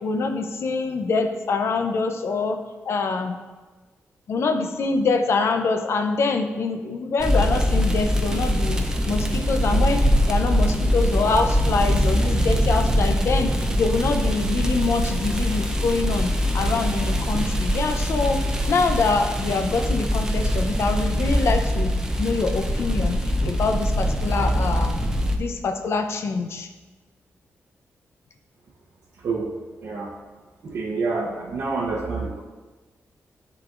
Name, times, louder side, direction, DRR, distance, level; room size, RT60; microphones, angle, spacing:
voice 1, 0.0-2.6 2.8-3.4 4.3-8.8 9.1-18.4 18.7-21.9 22.2-24.9 25.4-26.7, left 4 dB, 60° left, 6 dB, 0.5 m, -25 dB
sound 1, 7.2-25.4, equal, 15° right, 0.4 m, -23 dB
sound 2, 24.3-26.8, left 1 dB, 90° left, 1.6 m, -41 dB
voice 2, 29.2-29.5 29.8-30.1 30.6-32.4, right 4 dB, 70° right, -5 dB, 0.7 m, -27 dB
10.5 x 3.9 x 2.5 m, 1.3 s
wide cardioid pair, 160°, 5 cm